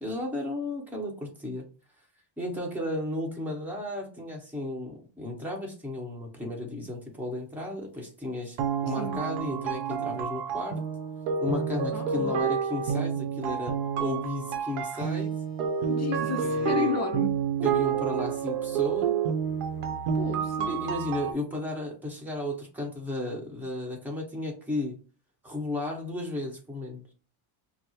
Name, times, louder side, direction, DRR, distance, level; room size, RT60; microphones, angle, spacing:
voice 1, 0.0-1.6 2.4-8.6 8.8-10.8 11.4-15.3 16.4-16.9 17.6-19.2 20.7-25.0 25.4-27.0, left 1 dB, 5° right, -1 dB, 1.0 m, -34 dB
sound 1, 8.6-21.3, right 7 dB, 85° right, 0.8 m, -29 dB
voice 2, 11.9-12.5 15.9-17.3 20.1-20.7, left 6 dB, 35° left, 4 dB, 0.5 m, -33 dB
5.0 x 2.0 x 2.9 m, 0.35 s
cardioid pair, 145°, 50 cm